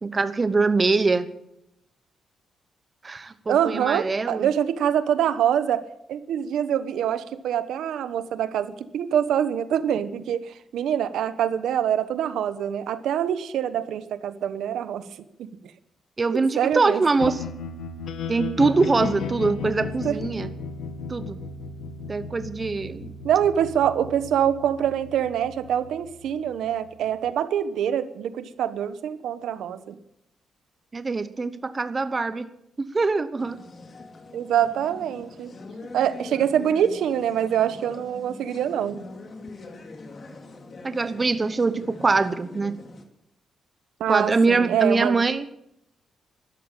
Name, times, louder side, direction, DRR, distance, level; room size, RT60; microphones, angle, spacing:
voice 1, 0.0-1.3 3.0-4.5 16.2-17.4 18.3-20.5 21.1-21.4 22.1-23.1 30.9-32.5 32.8-33.6 40.8-42.8 44.1-45.5, right 3 dB, 25° right, 12 dB, 1.0 m, -23 dB
voice 2, 3.5-5.8 6.1-15.0 15.4-15.5 16.3-17.0 20.0-20.2 23.2-30.0 34.3-35.5 35.9-39.0 44.0-45.2, right 9 dB, 85° right, 13 dB, 1.0 m, -25 dB
sound 1, 17.2-27.3, left 4 dB, 75° left, 1.6 m, -35 dB
sound 2, 33.4-43.0, left 3 dB, 40° left, 2.4 m, -43 dB
13.0 x 12.0 x 8.9 m, 0.79 s
cardioid pair, 125°, 0 cm